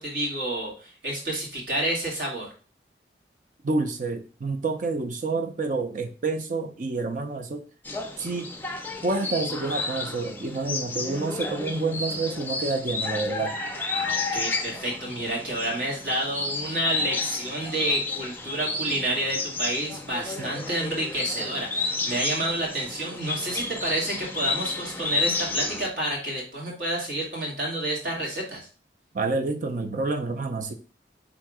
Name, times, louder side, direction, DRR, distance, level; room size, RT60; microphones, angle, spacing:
voice 1, 0.0-2.5 13.9-28.6, right 1 dB, 75° right, -3 dB, 2.0 m, -29 dB
voice 2, 3.6-7.6 8.2-8.5 9.0-13.6 29.1-30.7, right 3 dB, 45° right, 7 dB, 0.5 m, -28 dB
sound 1, 7.8-25.9, left 3 dB, 10° left, 0.4 m, -31 dB
3.5 x 2.8 x 4.7 m, 0.36 s
head